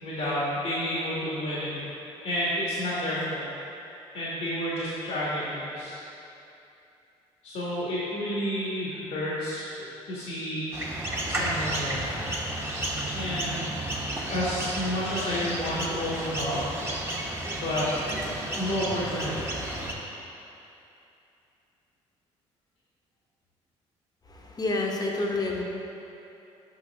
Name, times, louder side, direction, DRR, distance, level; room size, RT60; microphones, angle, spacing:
voice 1, 0.0-1.9 2.2-3.5 4.1-6.0 7.4-9.8 10.0-12.3 13.1-13.7 14.3-16.6 17.5-18.0 18.5-19.4, equal, 65° left, -8 dB, 1.4 m, -30 dB
sound 1, 10.7-19.9, right 1 dB, 15° right, 1.2 m, -32 dB
voice 2, 24.3-25.6, left 2 dB, 30° left, -1 dB, 1.1 m, -28 dB
6.4 x 5.4 x 3.4 m, 2.8 s
hypercardioid pair, 55°, 14 cm